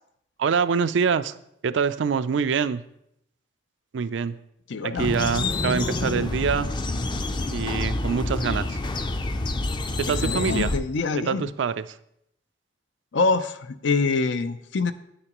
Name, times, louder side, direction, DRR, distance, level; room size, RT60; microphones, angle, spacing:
voice 1, 0.4-1.4 1.6-2.8 3.9-4.4 4.8-6.7 7.5-8.8 10.0-10.7 11.2-12.0, right 6 dB, 90° right, 14 dB, 0.4 m, -25 dB
voice 2, 4.7-5.1 10.2-11.5 13.1-14.9, left 4 dB, 90° left, 12 dB, 0.5 m, -25 dB
sound 1, 5.0-10.8, left 2 dB, 25° left, 0.4 m, -27 dB
9.8 x 9.1 x 3.0 m, 0.76 s
head